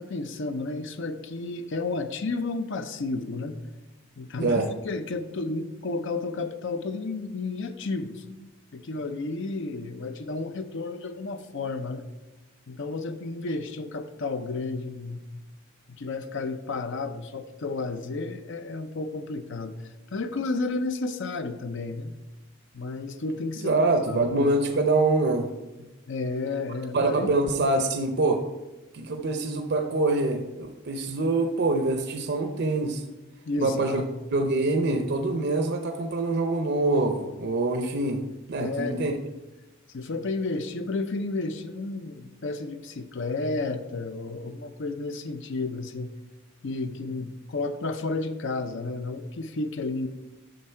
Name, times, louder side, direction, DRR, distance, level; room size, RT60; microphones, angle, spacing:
voice 1, 0.0-3.6 4.2-4.6 4.8-8.2 8.7-12.0 12.7-15.4 15.9-19.7 20.1-22.1 22.7-23.8 24.1-24.3 26.1-27.3 33.5-34.1 38.6-39.1 39.9-46.1 46.6-50.1, left 3 dB, 65° left, 9 dB, 0.6 m, -32 dB
voice 2, 23.6-25.5 26.9-28.4 28.9-33.0 33.6-34.0 34.3-38.2 38.5-39.1, right 2 dB, 55° right, 6 dB, 0.6 m, -25 dB
7.9 x 6.4 x 4.4 m, 1.1 s
head